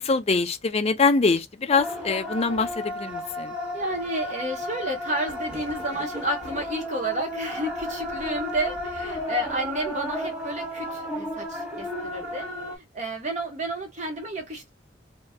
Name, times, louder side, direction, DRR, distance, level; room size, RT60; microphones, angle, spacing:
voice 1, 0.0-3.5, left 4 dB, 35° left, 0.5 m, -24 dB
sound 1, 1.7-12.8, left 1 dB, 5° right, 1.2 m, -33 dB
voice 2, 3.7-12.5 12.9-14.7, right 1 dB, 40° right, 1.1 m, -31 dB
2.8 x 2.3 x 3.5 m
head